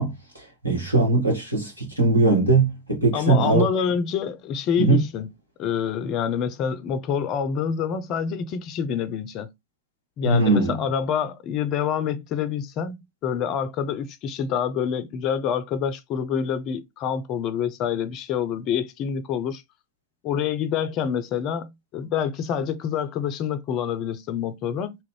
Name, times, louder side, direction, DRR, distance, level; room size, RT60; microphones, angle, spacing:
voice 1, 0.0-3.6 4.8-5.0 10.2-10.8, right 3 dB, 85° right, 1.4 m, -20 dB
voice 2, 3.1-5.3 5.6-9.5 10.2-19.6 20.2-25.0, left 7 dB, 35° left, 0.5 m, -27 dB
3.0 x 2.5 x 3.1 m
figure-of-eight pair, 90°, 0 cm